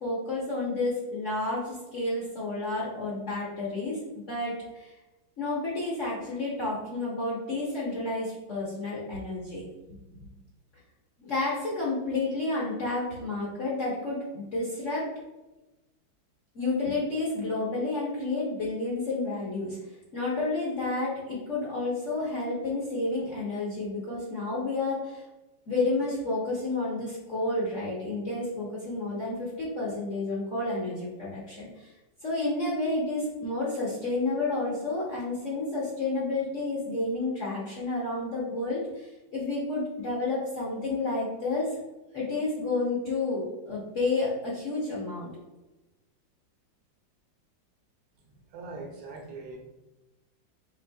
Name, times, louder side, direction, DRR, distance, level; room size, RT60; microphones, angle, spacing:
voice 1, 0.0-4.9 5.4-9.6 11.2-15.1 16.5-19.8 20.1-25.2 25.7-31.9 32.2-41.7 42.1-45.3, left 2 dB, 50° left, -6 dB, 1.1 m, -30 dB
voice 2, 48.3-49.6, right 3 dB, 60° right, 2 dB, 1.2 m, -42 dB
5.2 x 3.6 x 2.3 m, 1.0 s
omnidirectional pair, 2.2 m